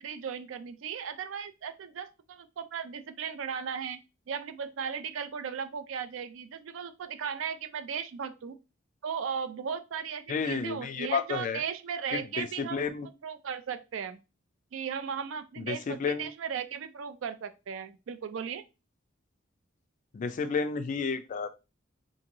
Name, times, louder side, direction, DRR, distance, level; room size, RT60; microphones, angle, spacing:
voice 1, 0.0-4.0 4.3-8.6 9.0-12.9 13.2-14.2 14.7-18.6, right 7 dB, 75° right, 11 dB, 0.4 m, -36 dB
voice 2, 10.3-11.6 12.1-13.1 15.6-16.3 20.1-21.5, left 5 dB, 40° left, 9 dB, 0.3 m, -31 dB
2.9 x 2.6 x 2.6 m, 0.28 s
head